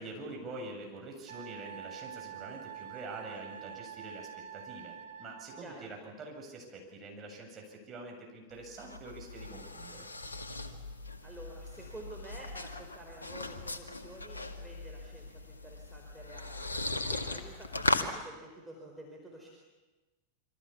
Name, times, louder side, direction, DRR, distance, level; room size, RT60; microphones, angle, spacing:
voice 1, 0.0-10.1, right 2 dB, 25° right, 1 dB, 7.8 m, -45 dB
Wind instrument woodwind instrument, 1.3-5.7, right 9 dB, 65° right, 2.8 m, -46 dB
sound 1, 8.5-18.1, left 2 dB, 75° left, 1.9 m, -38 dB
voice 2, 11.2-19.5, right 2 dB, 5° right, -1 dB, 4.8 m, -50 dB
27.5 x 25.0 x 7.2 m, 1.2 s
figure-of-eight pair, 90°, 0 cm